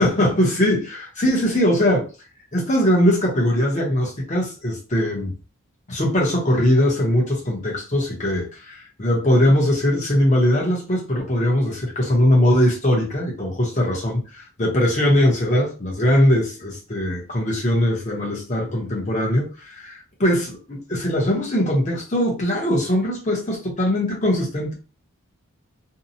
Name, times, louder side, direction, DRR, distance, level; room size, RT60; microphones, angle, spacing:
voice 1, 0.0-2.1 2.5-5.3 5.9-24.7, left 1 dB, 35° left, 0.9 m, -20 dB
2.7 x 2.2 x 2.7 m
head